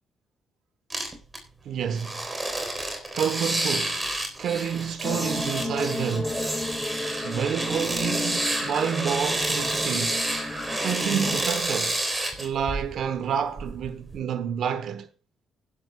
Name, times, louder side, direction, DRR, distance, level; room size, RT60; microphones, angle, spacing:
sound 1, 0.9-1.4 1.9-13.1 13.6-14.2, right 1 dB, 20° right, 3.8 m, -29 dB
voice 1, 1.6-2.3 3.1-6.5 7.2-10.3 10.8-12.0 12.4-15.1, right 8 dB, 70° right, 1.0 m, -29 dB
sound 2, 5.0-11.4, left 2 dB, 15° left, 1.3 m, -33 dB
20.0 x 11.5 x 2.3 m
cardioid pair, 90°, 0 cm